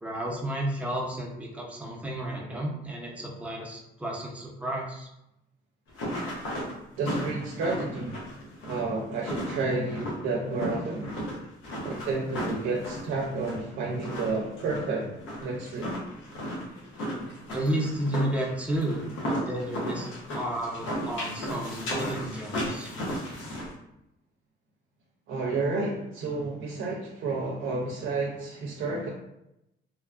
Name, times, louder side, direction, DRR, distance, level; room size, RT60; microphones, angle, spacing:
voice 1, 0.0-5.1 17.5-22.9, right 1 dB, 5° right, -2 dB, 0.6 m, -32 dB
sound 1, 5.9-23.7, equal, 90° left, 0.8 m, -35 dB
voice 2, 7.0-8.2 8.7-11.1 11.8-15.1 15.4-15.9 25.3-29.1, right 3 dB, 80° right, -2 dB, 0.5 m, -30 dB
2.8 x 2.2 x 2.4 m, 0.86 s
cardioid pair, 90°, 20 cm